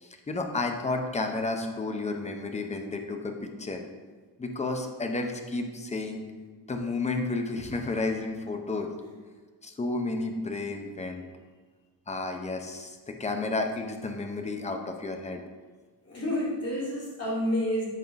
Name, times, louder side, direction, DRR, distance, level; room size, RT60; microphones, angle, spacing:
voice 1, 0.0-3.8 4.4-6.2 6.7-8.9 9.6-11.2 12.1-15.4, left 3 dB, 15° left, 4 dB, 0.6 m, -32 dB
voice 2, 16.1-17.8, equal, 35° left, -5 dB, 2.3 m, -29 dB
8.0 x 3.7 x 5.1 m, 1.4 s
wide cardioid pair, 175°, 41 cm